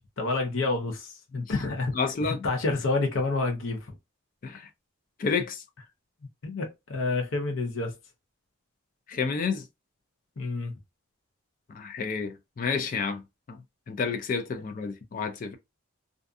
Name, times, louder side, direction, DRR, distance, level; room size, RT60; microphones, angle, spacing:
voice 1, 0.0-1.9 2.2-4.0 6.4-7.9 10.4-10.7, left 3 dB, 70° left, 0.7 m, -29 dB
voice 2, 1.9-2.5 4.4-4.7 5.2-5.6 9.1-9.7 11.7-13.2 13.5-13.6 13.9-15.6, left 5 dB, 40° left, 0.3 m, -30 dB
2.5 x 2.3 x 2.4 m
head